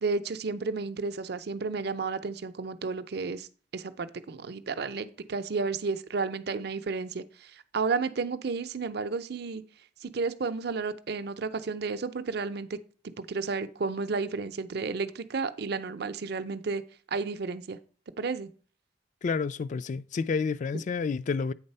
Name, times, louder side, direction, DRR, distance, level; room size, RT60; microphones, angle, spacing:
voice 1, 0.0-3.5 3.7-9.6 10.0-12.8 13.0-16.8 17.1-17.8 18.2-18.5, right 4 dB, 60° right, 0.6 m, -32 dB
voice 2, 19.2-21.5, left 5 dB, 40° left, 0.3 m, -29 dB
8.7 x 4.0 x 5.4 m
head